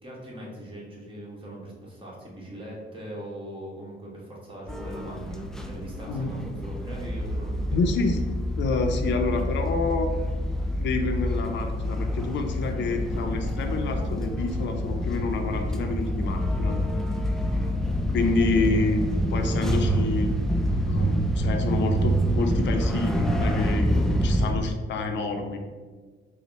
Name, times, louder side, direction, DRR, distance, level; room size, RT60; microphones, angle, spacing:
voice 1, 0.0-7.8 18.5-18.7, right 1 dB, 25° right, -4 dB, 1.3 m, -40 dB
sound 1, 4.7-24.5, equal, ahead, 0.3 m, -27 dB
voice 2, 7.7-8.2 8.6-10.1 10.8-16.8 18.1-19.0 19.3-20.3 20.8-25.6, left 3 dB, 65° left, 5 dB, 0.5 m, -28 dB
sound 2, 9.0-19.0, right 1 dB, 45° left, 0.8 m, -42 dB
4.1 x 2.1 x 4.0 m, 1.4 s
cardioid pair, 90°, 20 cm